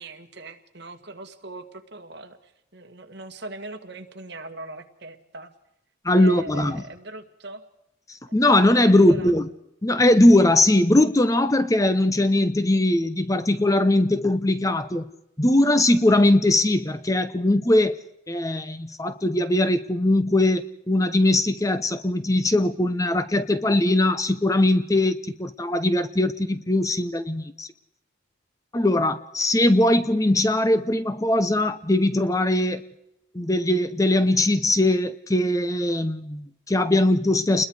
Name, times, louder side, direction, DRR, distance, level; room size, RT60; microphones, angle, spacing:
voice 1, 0.0-5.5 6.1-7.6 8.9-9.3, right 2 dB, 55° right, 6 dB, 2.0 m, -40 dB
voice 2, 6.0-6.8 8.3-9.5 9.8-15.1 15.4-18.0 18.3-27.7 28.7-32.8 33.3-37.7, left 1 dB, 15° left, 12 dB, 0.7 m, -20 dB
30.0 x 21.5 x 4.9 m, 0.84 s
head